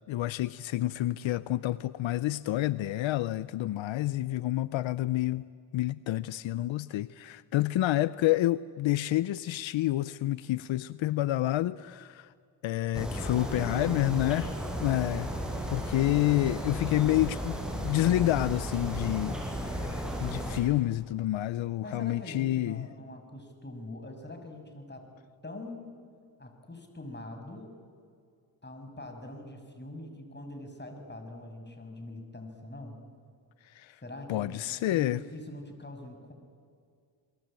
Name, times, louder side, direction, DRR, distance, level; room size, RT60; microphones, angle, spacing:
voice 1, 0.1-5.4 5.7-12.3 12.6-14.5 14.8-15.3 15.7-19.4 19.6-22.9 33.7-34.0 34.3-35.2, left 15 dB, 80° left, 18 dB, 0.7 m, -28 dB
sound 1, 12.9-20.6, equal, ahead, 6.7 m, -34 dB
voice 2, 13.3-15.0 21.8-25.1 25.4-25.9 26.4-27.7 28.6-33.0 34.0-34.6 34.9-36.3, left 1 dB, 25° left, 5 dB, 6.5 m, -43 dB
29.5 x 21.5 x 9.0 m, 2.2 s
cardioid pair, 65°, 46 cm